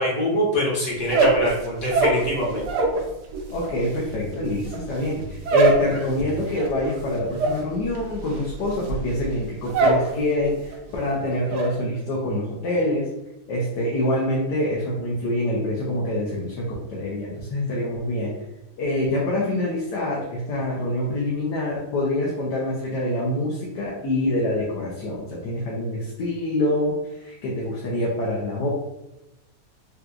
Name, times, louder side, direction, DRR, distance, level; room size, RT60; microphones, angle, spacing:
voice 1, 0.0-2.7, equal, 55° left, -4 dB, 1.4 m, -24 dB
sound 1, 1.0-3.0 3.3-10.1 10.4-10.9 11.2-11.7, right 3 dB, 75° right, 1.1 m, -23 dB
voice 2, 3.5-13.1 13.5-18.3 18.8-28.7, left 1 dB, 75° left, -5 dB, 1.3 m, -26 dB
4.3 x 2.3 x 2.4 m, 0.92 s
omnidirectional pair, 1.9 m